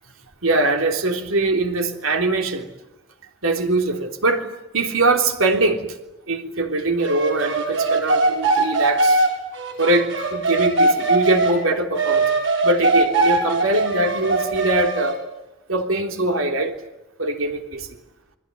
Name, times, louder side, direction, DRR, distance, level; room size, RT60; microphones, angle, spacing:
voice 1, 0.4-2.7 3.4-5.9 6.3-9.3 9.8-12.3 12.6-15.2 15.7-16.8 17.2-17.9, right 2 dB, 80° right, 4 dB, 3.4 m, -22 dB
sound 1, 7.0-11.6 12.0-15.1, right 3 dB, 65° right, 7.7 m, -20 dB
29.0 x 22.0 x 9.3 m, 0.93 s
head